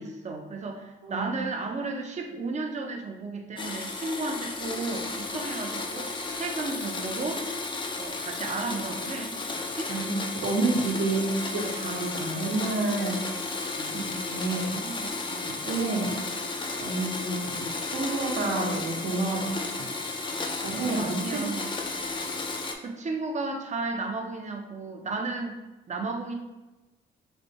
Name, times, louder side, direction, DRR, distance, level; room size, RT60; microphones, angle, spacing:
voice 1, 0.0-7.4 8.0-9.9 13.8-14.1 14.5-15.6 20.8-21.8 22.8-26.3, right 3 dB, 35° right, 3 dB, 0.7 m, -34 dB
Domestic sounds home sounds, 3.6-22.8, left 3 dB, 25° left, 0.5 m, -33 dB
voice 2, 9.9-13.2 13.9-14.7 15.6-16.1 16.8-19.5 19.8-19.9 20.6-21.5, right 3 dB, 70° right, -2 dB, 1.1 m, -29 dB
3.3 x 2.6 x 4.1 m, 1.1 s
cardioid pair, 90°, 20 cm